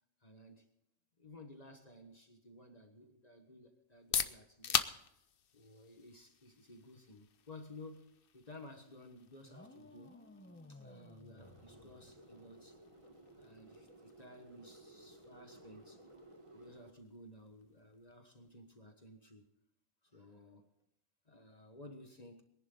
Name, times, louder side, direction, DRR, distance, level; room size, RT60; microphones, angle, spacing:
voice 1, 0.2-0.7 1.2-4.9 5.5-10.2 10.7-12.8 13.4-16.0 16.5-19.5 20.0-20.7 21.2-22.4, left 1 dB, 30° left, 1.5 m, -55 dB
sound 1, 3.8-19.5, left 8 dB, 50° left, 0.8 m, -45 dB
sound 2, 9.4-12.6, left 2 dB, 10° left, 0.7 m, -57 dB
sound 3, 11.4-16.9, right 1 dB, 25° right, 1.3 m, -58 dB
23.0 x 10.5 x 3.9 m
omnidirectional pair, 1.4 m